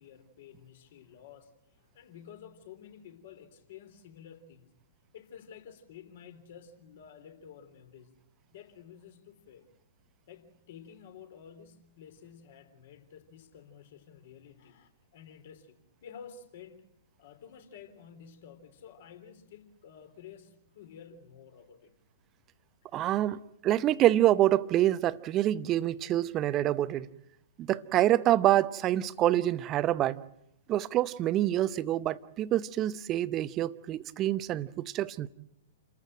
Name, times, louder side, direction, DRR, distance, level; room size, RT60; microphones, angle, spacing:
voice 1, 0.0-4.7 5.1-8.1 8.5-9.7 10.3-16.8 17.2-21.9 23.3-23.4, left 8 dB, 50° left, 3.5 m, -51 dB
voice 2, 22.9-27.1 27.6-30.2 30.7-35.3, right 13 dB, 25° right, 0.8 m, -26 dB
29.5 x 14.5 x 9.0 m
figure-of-eight pair, 110°, 0 cm